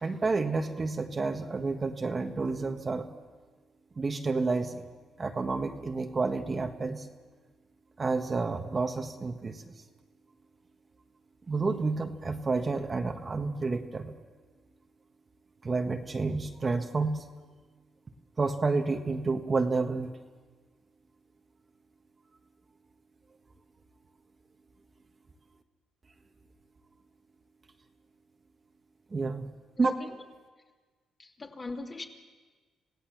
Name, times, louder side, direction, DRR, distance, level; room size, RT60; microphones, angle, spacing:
voice 1, 0.0-3.1 4.0-4.8 5.2-7.1 8.0-9.7 11.5-14.1 15.6-17.2 18.4-20.1 29.1-29.5 29.8-29.9, right 3 dB, 30° right, 4 dB, 1.4 m, -30 dB
voice 2, 29.8-30.1 31.2-32.0, left 3 dB, 30° left, 1 dB, 2.8 m, -38 dB
27.0 x 16.5 x 7.4 m, 1.4 s
cardioid pair, 90°, 0 cm